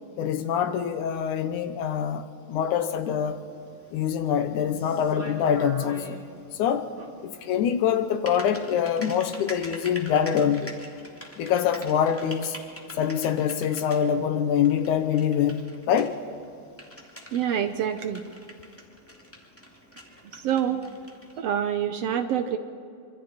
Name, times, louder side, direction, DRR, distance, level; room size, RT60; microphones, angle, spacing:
voice 1, 0.2-3.5 3.9-6.2 6.6-6.9 7.2-10.7 11.4-12.6 13.0-16.2, left 8 dB, 70° left, 2.2 m, -25 dB
Typing, 3.3-21.4, equal, 5° left, 1.6 m, -45 dB
voice 2, 17.3-18.2 20.3-20.9 21.4-22.6, right 9 dB, 75° right, 1.5 m, -26 dB
26.5 x 25.0 x 4.3 m
omnidirectional pair, 3.9 m